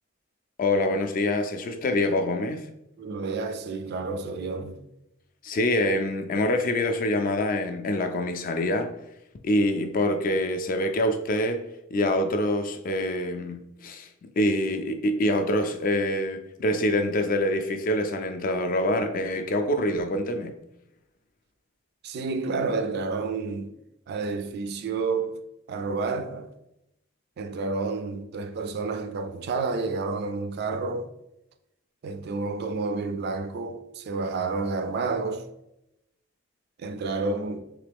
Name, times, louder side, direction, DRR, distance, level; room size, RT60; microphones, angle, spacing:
voice 1, 0.6-2.7 5.4-8.9 9.4-11.6 11.9-14.1 14.4-20.6, left 1 dB, 45° left, 0.3 m, -25 dB
voice 2, 3.0-4.8 22.0-23.7 24.1-25.4 25.7-26.5 27.4-31.1 32.0-35.4 36.8-37.6, right 3 dB, 55° right, 0.3 m, -30 dB
3.3 x 2.9 x 3.4 m
head